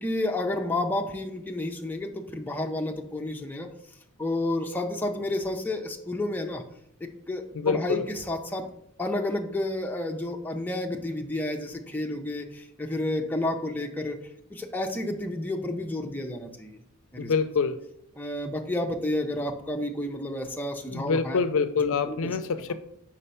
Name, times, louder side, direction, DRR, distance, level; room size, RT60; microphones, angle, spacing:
voice 1, 0.0-3.7 4.2-6.6 7.0-8.7 9.0-14.2 14.5-16.8 17.1-17.3 18.2-21.4 21.8-22.3, left 1 dB, 10° left, 2 dB, 0.6 m, -30 dB
voice 2, 7.5-8.1 17.2-17.8 20.9-22.7, left 5 dB, 65° left, 11 dB, 0.4 m, -26 dB
5.1 x 4.4 x 5.5 m, 0.75 s
head